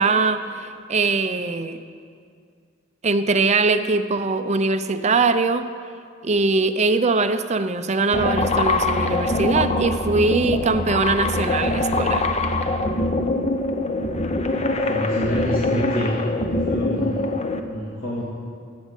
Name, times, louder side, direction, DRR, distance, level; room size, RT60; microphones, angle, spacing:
voice 1, 0.0-1.8 3.0-5.7 6.2-12.3, right 3 dB, 35° right, 9 dB, 0.6 m, -21 dB
sound 1, 8.1-17.6, left 2 dB, 35° left, 0.8 m, -23 dB
voice 2, 14.3-16.2 16.5-17.3 17.7-18.2, equal, 90° left, -8 dB, 2.7 m, -28 dB
17.5 x 6.3 x 9.0 m, 2.2 s
head